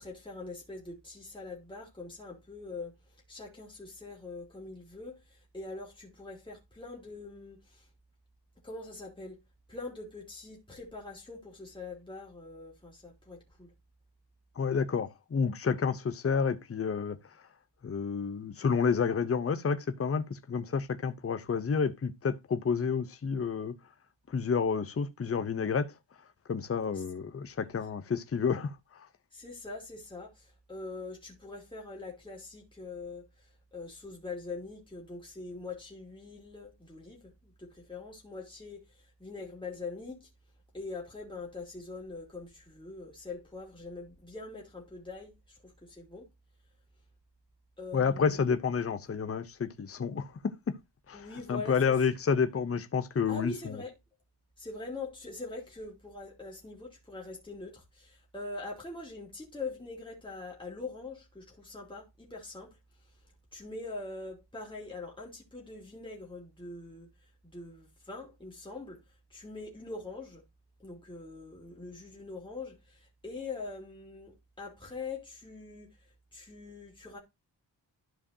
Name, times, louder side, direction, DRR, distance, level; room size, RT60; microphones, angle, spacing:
voice 1, 0.0-2.9 3.3-7.9 8.6-9.4 9.7-13.7 26.9-27.0 29.3-40.3 40.7-46.3 47.8-48.4 51.1-51.9 53.3-53.9 54.6-62.7 63.5-67.1 67.4-69.0 69.3-70.4 70.8-77.2, left 3 dB, 10° left, 2.6 m, -43 dB
voice 2, 14.6-17.2 17.8-23.7 24.3-25.9 26.5-29.1 47.9-50.8 51.1-53.7, left 6 dB, 30° left, 0.7 m, -30 dB
12.5 x 4.9 x 2.7 m
wide cardioid pair, 175°, 43 cm